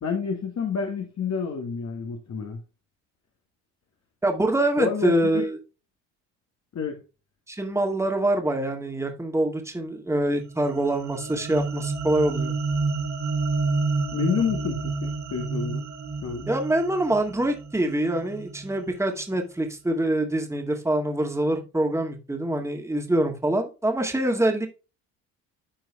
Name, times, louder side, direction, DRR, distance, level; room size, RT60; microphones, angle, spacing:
voice 1, 0.0-2.6 4.8-5.5 6.7-7.0 14.1-15.8 16.2-16.5, left 6 dB, 40° left, 1.6 m, -29 dB
voice 2, 4.2-5.6 7.5-12.5 16.5-24.7, right 1 dB, 5° right, 2.0 m, -25 dB
sound 1, 10.5-18.9, right 3 dB, 45° right, 2.0 m, -30 dB
13.5 x 4.6 x 2.3 m
supercardioid pair, 75°, 41 cm